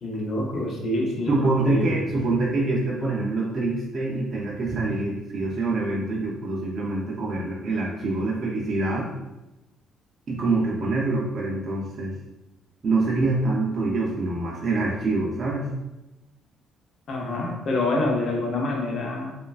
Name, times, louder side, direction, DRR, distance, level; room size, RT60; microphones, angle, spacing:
voice 1, 0.0-1.9 17.1-19.4, left 2 dB, 40° left, -1 dB, 0.4 m, -26 dB
voice 2, 1.3-9.1 10.3-12.1 12.8-15.7, right 2 dB, 35° right, -5 dB, 0.4 m, -25 dB
3.0 x 2.2 x 2.3 m, 0.98 s
cardioid pair, 170°, 0 cm